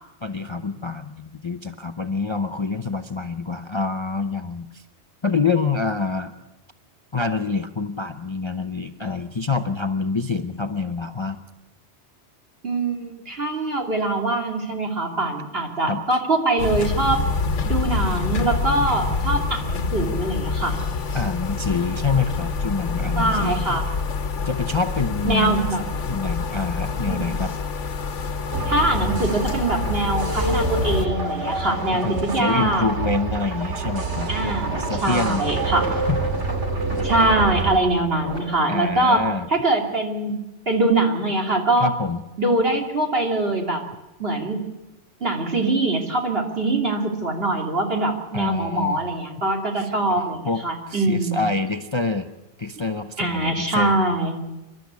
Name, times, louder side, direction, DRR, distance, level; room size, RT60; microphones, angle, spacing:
voice 1, 0.2-4.8 5.2-6.3 7.1-11.4 15.9-16.2 21.1-23.8 24.4-25.8 26.1-27.6 31.9-35.4 36.1-36.4 38.7-39.5 41.8-42.2 48.3-49.1 49.8-52.3 52.6-54.0, left 4 dB, 30° left, 8 dB, 0.7 m, -26 dB
voice 2, 12.6-17.2 17.6-20.7 23.2-23.8 25.2-25.8 27.0-27.3 28.6-32.9 34.3-35.9 37.0-39.2 39.5-40.4 40.7-41.9 42.4-43.8 44.2-44.6 45.2-51.4 53.2-54.3, right 2 dB, 55° right, 1 dB, 3.0 m, -23 dB
sound 1, 16.6-31.1, left 4 dB, 85° left, 1.4 m, -26 dB
sound 2, 28.5-37.8, right 3 dB, 75° right, 2.9 m, -27 dB
sound 3, 34.1-39.3, equal, 20° right, 5.0 m, -39 dB
27.0 x 12.0 x 8.3 m, 1.0 s
omnidirectional pair, 1.2 m